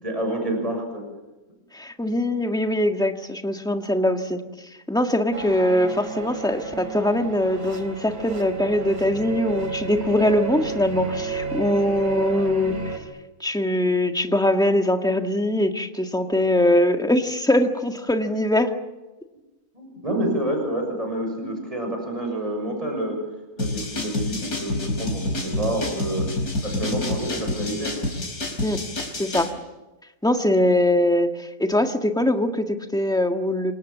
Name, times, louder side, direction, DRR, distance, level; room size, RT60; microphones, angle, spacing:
voice 1, 0.0-1.0 11.6-11.8 19.7-23.2 23.5-26.2 26.6-27.9, right 1 dB, 20° right, 2 dB, 6.8 m, -28 dB
voice 2, 1.7-4.4 4.9-12.9 13.4-18.7 28.6-28.8 29.1-29.5 30.2-33.7, left 1 dB, 5° left, 4 dB, 1.7 m, -22 dB
sound 1, 5.3-13.0, right 6 dB, 65° right, 4.2 m, -32 dB
sound 2, 23.6-29.5, left 2 dB, 85° left, 4.9 m, -28 dB
28.0 x 25.0 x 7.4 m, 1.1 s
omnidirectional pair, 1.6 m